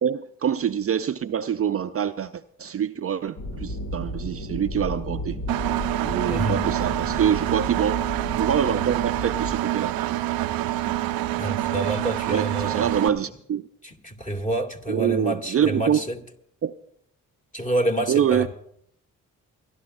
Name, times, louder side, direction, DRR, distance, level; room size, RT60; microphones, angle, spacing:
voice 1, 0.0-5.4 6.0-8.0 8.3-10.0 12.3-13.6 14.9-16.0 16.6-16.7 18.1-18.5, right 9 dB, 45° right, 0.5 m, -25 dB
sound 1, 3.4-9.6, left 1 dB, 60° left, 2.1 m, -33 dB
Engine, 5.5-13.1, right 14 dB, 90° right, 0.5 m, -26 dB
voice 2, 6.3-6.8 11.3-12.9 13.8-16.2 17.5-18.5, right 1 dB, 20° left, 2.3 m, -27 dB
29.0 x 11.5 x 2.5 m
supercardioid pair, 55°, 34 cm